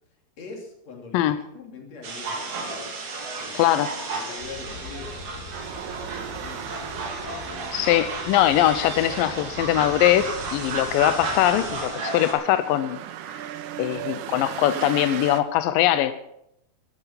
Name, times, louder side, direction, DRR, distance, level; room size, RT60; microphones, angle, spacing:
voice 1, 0.4-2.5 3.4-3.7 4.1-6.7, left 4 dB, 45° left, 1 dB, 3.8 m, -43 dB
sound 1, 2.0-12.3, right 3 dB, 50° right, 3.9 m, -33 dB
voice 2, 3.5-4.2 7.7-13.0 13.8-16.1, left 13 dB, 85° left, 11 dB, 2.0 m, -22 dB
sound 2, 4.4-11.8, left 3 dB, 65° left, 4.5 m, -43 dB
sound 3, 5.5-15.4, right 10 dB, 80° right, 2.9 m, -38 dB
15.0 x 12.5 x 5.9 m, 0.77 s
omnidirectional pair, 4.8 m